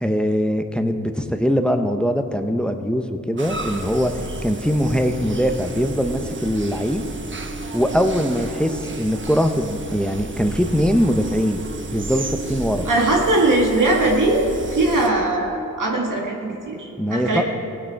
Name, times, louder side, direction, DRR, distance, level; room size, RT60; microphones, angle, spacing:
voice 1, 0.0-4.1 4.4-7.0 7.7-12.9 17.0-17.4, equal, 5° left, 7 dB, 0.8 m, -22 dB
sound 1, 3.4-15.1, right 3 dB, 35° right, 1.1 m, -32 dB
voice 2, 12.9-14.5 14.7-17.4, right 2 dB, 70° right, -1 dB, 1.8 m, -20 dB
16.5 x 8.8 x 4.6 m, 2.8 s
cardioid pair, 55°, 32 cm